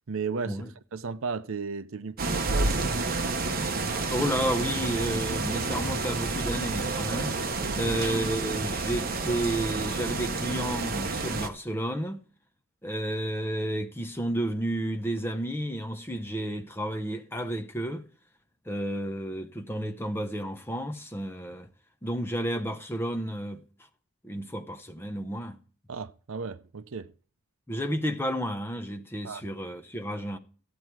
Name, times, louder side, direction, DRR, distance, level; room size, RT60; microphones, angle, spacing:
voice 1, 0.1-3.0 7.6-7.9 25.9-27.1 29.2-29.5, right 5 dB, 65° right, 0.6 m, -35 dB
sound 1, 2.2-11.5, right 3 dB, 40° right, 1.0 m, -29 dB
voice 2, 4.1-7.3 7.7-12.2 12.8-18.0 18.7-21.7 22.0-23.6 24.2-25.6 27.7-30.4, right 1 dB, 10° left, 0.8 m, -31 dB
14.5 x 8.5 x 4.7 m
head